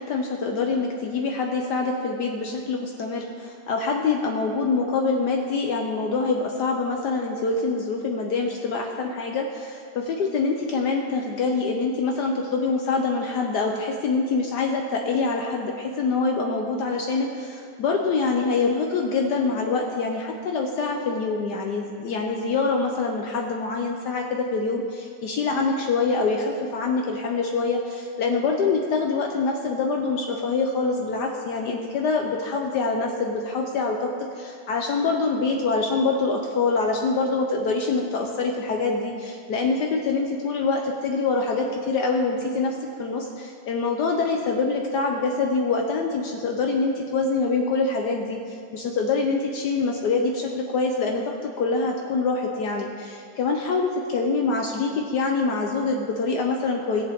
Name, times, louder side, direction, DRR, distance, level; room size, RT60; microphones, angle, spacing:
voice 1, 0.0-34.1 34.4-51.2 51.6-57.0, left 4 dB, 70° left, 1 dB, 1.3 m, -25 dB
19.0 x 7.1 x 3.6 m, 2.4 s
omnidirectional pair, 2.0 m